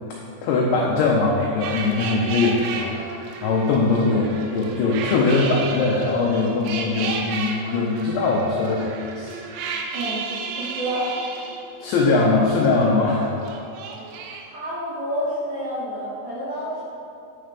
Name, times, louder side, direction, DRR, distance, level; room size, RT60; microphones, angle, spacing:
voice 1, 0.1-9.7 11.8-13.3, left 3 dB, 85° left, -2 dB, 2.6 m, -21 dB
sound 1, 1.6-12.8 13.1-14.4, right 5 dB, 85° right, 2.5 m, -33 dB
voice 2, 9.9-10.2 10.6-11.1 14.4-16.8, equal, 60° right, -9 dB, 2.9 m, -29 dB
9.7 x 4.3 x 5.1 m, 2.5 s
omnidirectional pair, 6.0 m